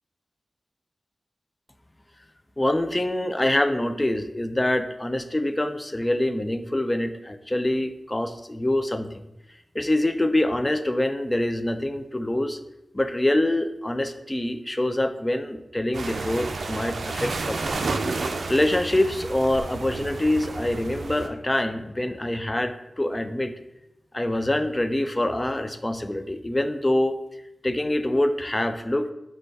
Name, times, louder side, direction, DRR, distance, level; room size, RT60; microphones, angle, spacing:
voice 1, 2.6-9.2 9.7-12.6 12.9-17.8 18.5-23.5 24.1-27.2 27.6-29.1, left 1 dB, 20° left, 9 dB, 0.3 m, -25 dB
sound 1, 15.9-21.3, right 3 dB, 75° right, 0.4 m, -31 dB
5.1 x 2.3 x 4.5 m, 0.89 s
wide cardioid pair, 90°, 0 cm